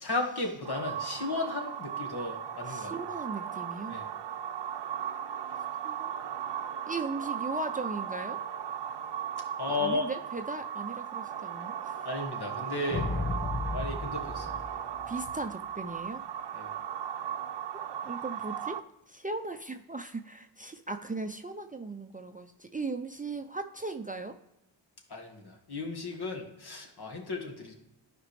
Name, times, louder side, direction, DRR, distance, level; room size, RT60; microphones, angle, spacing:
voice 1, 0.0-2.9 3.9-4.1 9.6-10.1 12.0-13.1 13.7-14.6 16.5-16.7 25.1-27.7, left 2 dB, 60° left, 2 dB, 1.8 m, -34 dB
sound 1, 0.6-18.8, right 9 dB, 70° right, 0.7 m, -37 dB
voice 2, 2.7-4.0 5.8-6.1 6.9-8.4 9.7-12.1 15.1-16.2 18.0-18.8 19.1-24.3, right 3 dB, 20° right, 6 dB, 0.5 m, -37 dB
sound 2, 12.9-15.4, left 2 dB, 25° left, 0.8 m, -34 dB
12.0 x 5.1 x 3.3 m, 0.88 s
wide cardioid pair, 85°, 44 cm